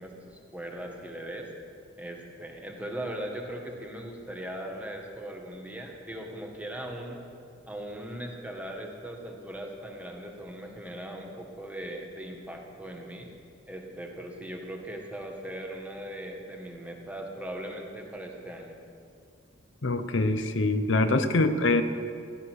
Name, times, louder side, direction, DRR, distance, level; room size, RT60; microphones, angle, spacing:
voice 1, 0.0-1.5 2.0-7.2 7.7-13.3 13.7-18.7, right 1 dB, 5° right, 1 dB, 1.7 m, -39 dB
voice 2, 19.8-21.8, left 2 dB, 70° left, 9 dB, 0.8 m, -24 dB
16.0 x 12.5 x 6.4 m, 2.4 s
head